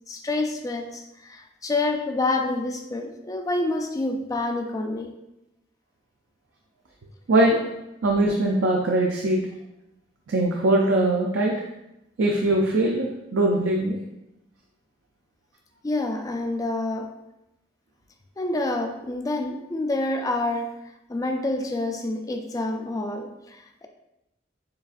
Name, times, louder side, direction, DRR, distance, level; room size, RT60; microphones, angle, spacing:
voice 1, 0.1-5.1 15.8-17.1 18.4-20.7 21.1-23.9, left 2 dB, 20° left, 4 dB, 0.3 m, -28 dB
voice 2, 7.3-7.6 8.0-9.4 10.3-11.5 12.2-14.0, right 1 dB, 75° right, 0 dB, 0.4 m, -21 dB
6.8 x 2.4 x 2.4 m, 0.89 s
head